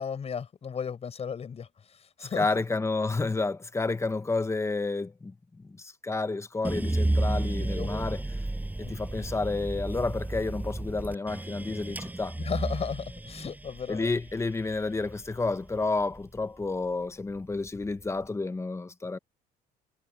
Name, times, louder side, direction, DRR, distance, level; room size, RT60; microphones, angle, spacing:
voice 1, 0.0-2.6 7.6-7.9 8.8-8.9 12.4-14.1, left 6 dB, 40° left, 5.0 m, -35 dB
voice 2, 2.2-8.2 8.8-12.4 13.9-19.2, left 3 dB, 15° left, 1.2 m, -30 dB
sound 1, 6.6-16.8 17.3-18.1, right 2 dB, 10° right, 6.1 m, -33 dB
cardioid pair, 110°, 17 cm